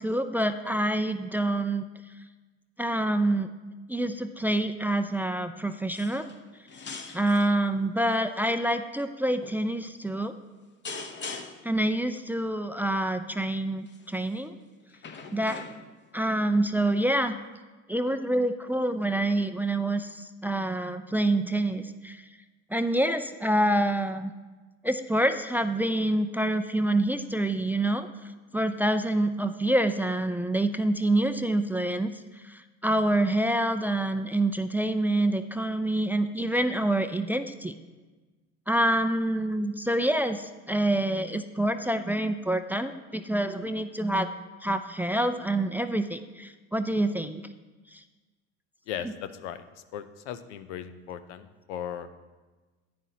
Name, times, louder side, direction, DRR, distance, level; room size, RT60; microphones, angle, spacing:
voice 1, 0.0-1.8 2.8-3.5 3.9-6.3 7.1-10.3 11.6-14.6 15.3-15.6 16.1-17.3 17.9-22.2 22.7-24.3 24.8-28.1 28.5-37.7 38.7-44.3 44.6-47.4 47.9-48.0, right 1 dB, 5° right, 9 dB, 0.3 m, -27 dB
sound 1, 5.9-6.4 6.7-7.5 8.2-8.6 9.4-9.6 10.8-11.8 13.9-14.2 14.9-16.1 17.1-17.2, left 4 dB, 30° left, 0.9 m, -41 dB
voice 2, 48.9-52.1, left 9 dB, 85° left, 11 dB, 0.6 m, -38 dB
10.5 x 9.3 x 2.8 m, 1.3 s
hypercardioid pair, 75°, 35 cm